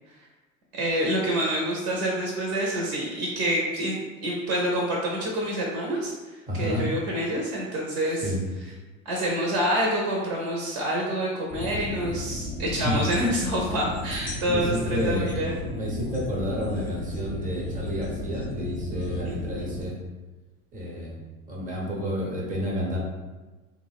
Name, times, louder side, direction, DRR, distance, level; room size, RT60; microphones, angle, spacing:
voice 1, 0.7-8.3 9.0-15.6 19.2-19.5, right 1 dB, 50° right, -3 dB, 0.7 m, -27 dB
voice 2, 6.5-6.9 8.2-8.4 12.8-13.1 14.4-15.4 15.6-20.0 20.7-21.2 21.5-23.0, equal, 20° right, -3 dB, 0.7 m, -30 dB
sound 1, 11.5-19.8, left 1 dB, 15° left, 0.3 m, -34 dB
2.7 x 2.0 x 2.4 m, 1.2 s
hypercardioid pair, 85°, 44 cm